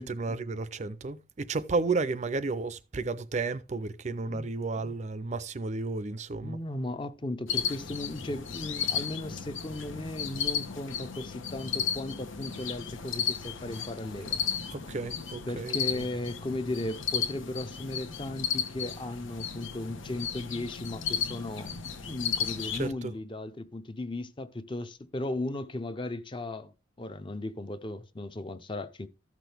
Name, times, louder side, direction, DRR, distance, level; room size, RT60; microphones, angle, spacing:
voice 1, 0.0-6.6 14.7-16.0 22.7-23.1, right 3 dB, 35° right, 0.4 m, -32 dB
voice 2, 6.4-14.4 15.5-21.7 22.1-29.1, left 2 dB, 25° left, 0.6 m, -36 dB
sound 1, 7.5-22.9, left 7 dB, 90° left, 1.1 m, -34 dB
14.0 x 6.0 x 3.4 m
head